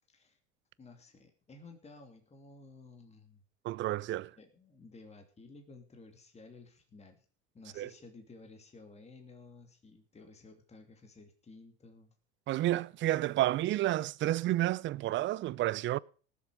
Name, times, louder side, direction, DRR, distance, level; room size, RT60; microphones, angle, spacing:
voice 1, 0.1-0.4 0.8-3.4 4.4-7.2 7.5-12.1, left 3 dB, 20° left, 2.8 m, -54 dB
voice 2, 3.6-4.3 7.8-7.9 12.5-16.0, right 15 dB, 35° right, 0.6 m, -30 dB
19.0 x 7.6 x 5.1 m
hypercardioid pair, 90°, 33 cm